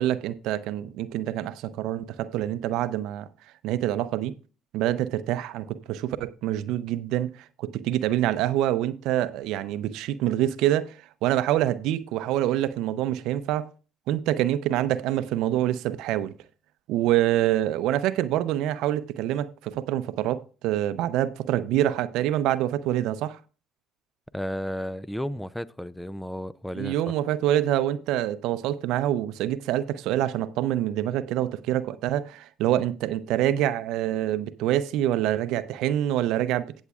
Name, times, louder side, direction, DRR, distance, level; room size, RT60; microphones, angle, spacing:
voice 1, 0.0-3.3 3.6-4.3 4.7-13.7 14.1-16.3 16.9-23.4 26.8-36.7, right 12 dB, 70° right, 0.6 m, -26 dB
voice 2, 24.3-27.0, equal, 5° left, 0.5 m, -33 dB
17.5 x 7.3 x 2.4 m
supercardioid pair, 75°, 0 cm